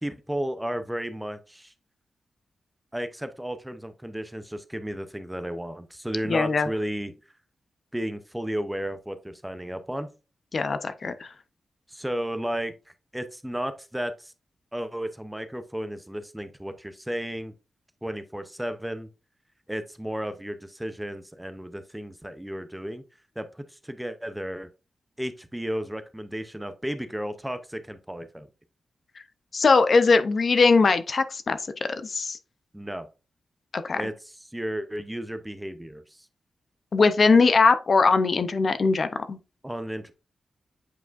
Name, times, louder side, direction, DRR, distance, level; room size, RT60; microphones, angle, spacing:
voice 1, 0.0-1.7 2.9-7.1 7.9-10.1 11.9-12.7 13.1-14.3 14.7-17.5 18.0-19.1 19.7-23.0 23.4-24.7 25.2-28.5 32.7-33.1 33.9-36.3 39.6-40.1, equal, 5° right, 0.6 m, -33 dB
voice 2, 6.3-6.7 10.5-11.3 29.5-32.4 33.7-34.0 36.9-39.4, left 4 dB, 50° left, 0.6 m, -21 dB
8.2 x 4.8 x 2.5 m
wide cardioid pair, 105°, 0 cm